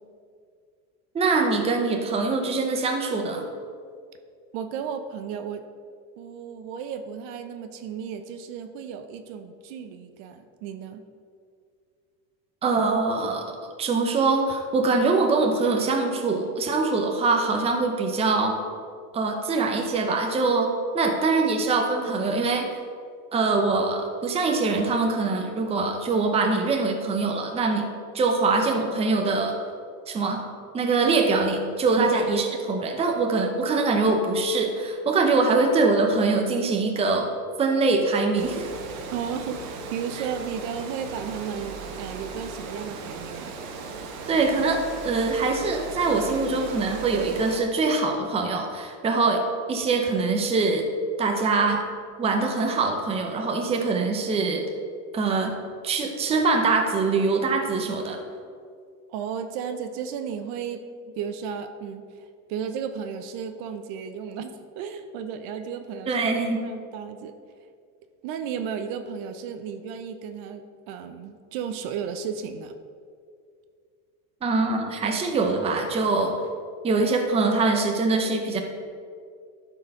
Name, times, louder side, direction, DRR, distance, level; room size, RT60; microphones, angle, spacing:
voice 1, 1.1-3.4 12.6-18.6 19.1-22.7 23.3-27.9 28.1-29.6 30.1-30.4 30.7-37.3 37.6-38.7 44.3-49.4 49.7-50.8 51.2-51.8 52.2-54.6 55.1-55.5 55.8-58.2 66.1-66.6 74.4-76.3 76.8-78.6, right 3 dB, 15° right, 3 dB, 0.7 m, -23 dB
voice 2, 4.5-5.6 6.2-11.0 32.0-32.2 39.1-43.5 59.1-66.3 66.6-67.3 68.2-72.7, right 7 dB, 60° right, 8 dB, 0.7 m, -34 dB
Water, 38.3-47.6, right 4 dB, 85° right, 1.3 m, -37 dB
12.0 x 4.7 x 5.3 m, 2.2 s
cardioid pair, 155°, 40 cm